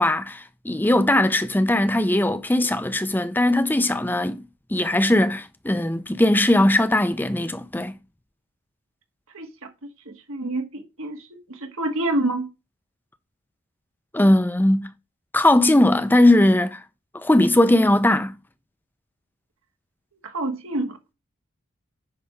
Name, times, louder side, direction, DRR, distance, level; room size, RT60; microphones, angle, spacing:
voice 1, 0.0-4.4 4.7-7.9 14.1-14.9 15.3-16.8 17.1-18.3, left 1 dB, 10° left, 0.5 m, -19 dB
voice 2, 9.3-9.7 10.0-12.5 20.2-21.0, right 2 dB, 70° right, 1.6 m, -28 dB
9.4 x 3.5 x 5.5 m
head